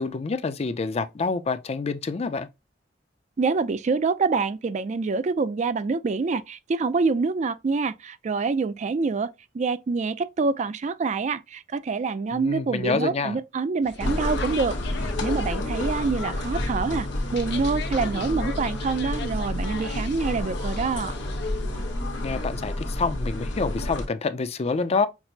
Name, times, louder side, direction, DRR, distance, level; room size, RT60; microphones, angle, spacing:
voice 1, 0.0-2.5 12.3-13.4 22.2-25.1, left 4 dB, 35° left, 0.4 m, -27 dB
voice 2, 3.4-14.8 15.2-21.1, right 4 dB, 40° right, 0.3 m, -26 dB
sound 1, 13.8-21.7, left 5 dB, 65° left, 0.7 m, -40 dB
sound 2, 14.0-24.1, left 1 dB, 85° left, 1.1 m, -29 dB
5.9 x 2.0 x 2.7 m
head